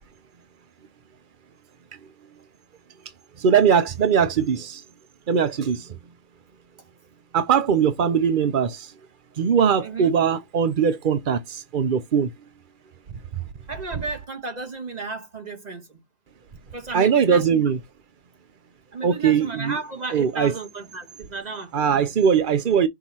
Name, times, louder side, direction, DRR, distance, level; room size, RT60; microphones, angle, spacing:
voice 1, 3.4-4.8 5.3-5.9 7.3-8.9 9.4-12.3 16.9-17.8 19.0-19.8 20.1-20.5 21.7-22.9, right 7 dB, 60° right, 0.5 m, -20 dB
voice 2, 9.8-10.1 13.7-16.0 16.7-17.6 18.9-21.7, right 4 dB, 25° right, 1.6 m, -33 dB
5.9 x 2.9 x 5.6 m
omnidirectional pair, 1.7 m